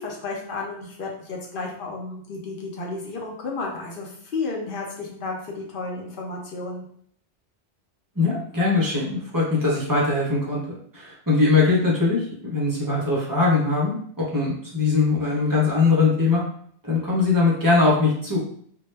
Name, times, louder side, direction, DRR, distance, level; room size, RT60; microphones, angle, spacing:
voice 1, 0.0-6.8, left 3 dB, 60° left, -1 dB, 0.7 m, -32 dB
voice 2, 8.2-10.6 10.9-16.4 16.8-18.4, left 3 dB, 30° right, -5 dB, 0.4 m, -21 dB
2.2 x 2.0 x 3.1 m, 0.62 s
omnidirectional pair, 1.2 m